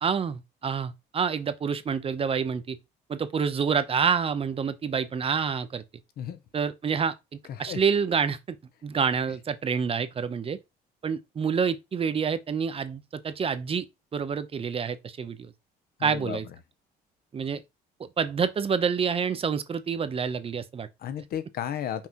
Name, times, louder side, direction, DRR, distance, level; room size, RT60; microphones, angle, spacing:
voice 1, 0.0-2.8 3.1-5.8 6.5-7.1 7.6-8.6 8.8-10.6 11.0-13.8 14.1-15.5 16.0-16.4 17.3-17.6 18.0-20.9, right 6 dB, 35° right, 0.8 m, -27 dB
voice 2, 7.5-7.8 16.0-16.4 21.0-22.1, left 9 dB, 65° left, 1.2 m, -33 dB
5.8 x 4.0 x 4.6 m
cardioid pair, 110°, 17 cm